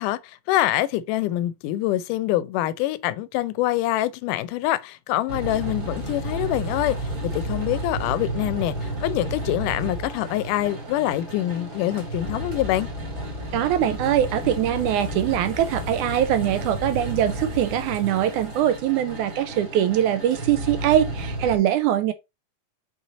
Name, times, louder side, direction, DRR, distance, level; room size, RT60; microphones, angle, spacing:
voice 1, 0.0-12.9, left 14 dB, 80° left, 2.0 m, -25 dB
sound 1, 5.3-21.6, right 1 dB, 30° right, 2.5 m, -32 dB
voice 2, 13.5-22.1, right 11 dB, 80° right, 1.9 m, -22 dB
5.6 x 4.8 x 4.0 m
omnidirectional pair, 3.8 m